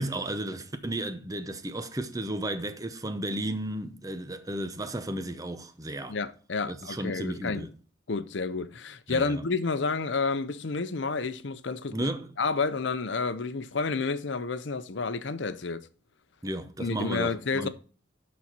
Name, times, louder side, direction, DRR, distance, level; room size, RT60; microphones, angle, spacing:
voice 1, 0.0-6.2 6.7-7.7 9.1-9.4 11.9-12.3 16.4-17.7, right 1 dB, 20° right, 0.7 m, -33 dB
voice 2, 6.1-7.7 8.1-12.1 12.4-15.8 16.8-17.7, left 4 dB, 70° left, 0.6 m, -30 dB
11.0 x 4.2 x 4.4 m
head